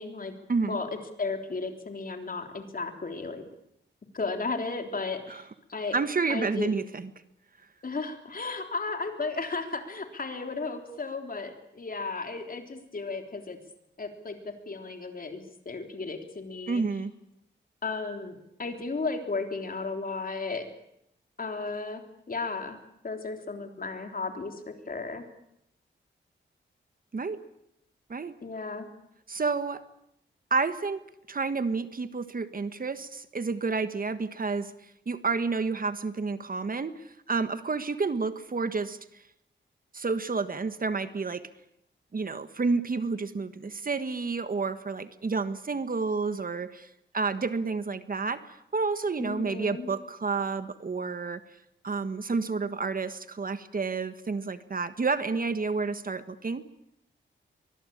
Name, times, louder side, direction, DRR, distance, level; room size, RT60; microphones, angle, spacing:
voice 1, 0.0-0.3 0.6-3.4 4.1-6.0 6.3-6.7 7.8-13.6 14.0-14.4 14.7-16.8 17.8-20.6 21.4-22.0 22.3-22.8 23.0-25.2 28.4-28.9 49.2-49.9, left 3 dB, 45° left, 5 dB, 3.6 m, -34 dB
voice 2, 5.9-7.1 16.7-17.1 27.1-27.4 28.1-28.3 29.3-29.8 30.5-31.0 31.3-34.7 35.1-39.0 39.9-41.4 42.1-46.9 47.1-51.4 51.8-56.6, right 4 dB, 45° right, 11 dB, 1.4 m, -30 dB
23.5 x 20.5 x 8.7 m, 0.79 s
wide cardioid pair, 85°, 20 cm